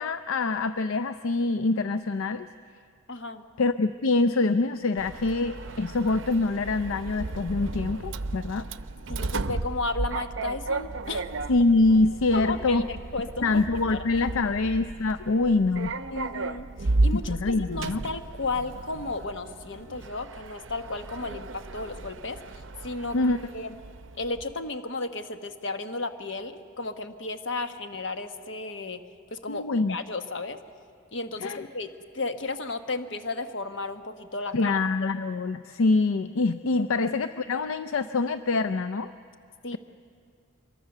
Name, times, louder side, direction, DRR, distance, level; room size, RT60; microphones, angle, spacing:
voice 1, 0.0-2.5 3.6-8.7 11.5-12.9 13.4-15.9 17.1-18.0 23.1-23.4 29.5-30.0 31.4-31.7 34.5-39.1, left 3 dB, 70° left, 12 dB, 0.5 m, -25 dB
voice 2, 3.1-3.4 9.1-11.3 12.3-13.6 13.9-14.0 16.1-22.4 22.8-23.2 23.5-23.8 24.2-29.0 29.3-30.6 31.1-35.1 36.7-36.9 39.6-39.8, left 3 dB, 55° left, 8 dB, 1.2 m, -34 dB
Sliding door, 5.0-24.6, right 2 dB, 60° right, 0.6 m, -34 dB
24.5 x 22.0 x 6.7 m, 2.3 s
head